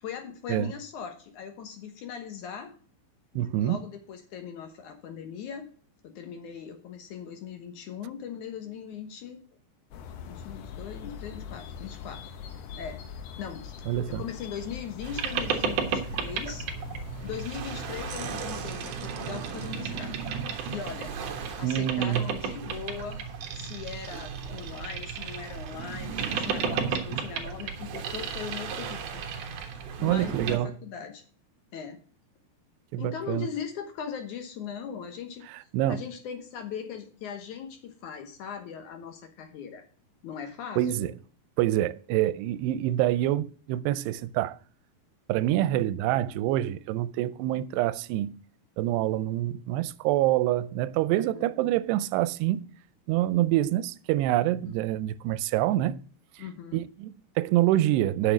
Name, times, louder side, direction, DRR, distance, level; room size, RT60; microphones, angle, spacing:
voice 1, 0.0-2.7 3.3-5.7 6.0-9.4 10.3-12.2 12.8-13.0 13.4-16.7 17.2-20.2 20.7-23.2 23.5-29.2 30.0-31.2 31.7-32.0 33.0-35.5 35.9-39.8 40.2-41.1 51.1-51.5 54.6-54.8 56.4-56.9, left 7 dB, 65° left, 2.1 m, -39 dB
voice 2, 3.4-3.8 13.9-14.2 21.6-22.3 30.0-30.8 32.9-33.5 35.7-36.0 40.8-41.1 41.6-44.6 45.3-48.4 48.8-52.7 53.1-56.0 56.7-58.3, right 14 dB, 90° right, 2.7 m, -26 dB
sound 1, 9.9-18.6, left 7 dB, 85° left, 3.3 m, -42 dB
Boat Water vehicle, 15.0-30.6, right 6 dB, 60° right, 2.5 m, -33 dB
9.3 x 7.0 x 6.1 m
omnidirectional pair, 4.7 m